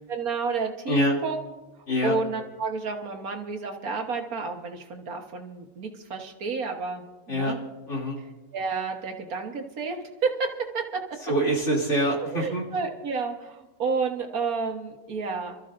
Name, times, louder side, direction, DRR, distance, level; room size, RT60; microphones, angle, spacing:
voice 1, 0.1-1.4 1.7-7.6 8.5-11.0 12.3-15.5, right 4 dB, 70° right, 4 dB, 1.7 m, -30 dB
voice 2, 0.9-1.2 1.9-2.1 7.3-7.6 7.9-8.2 11.3-12.6, equal, 50° left, -3 dB, 3.2 m, -25 dB
27.0 x 13.5 x 2.6 m, 1.1 s
omnidirectional pair, 1.6 m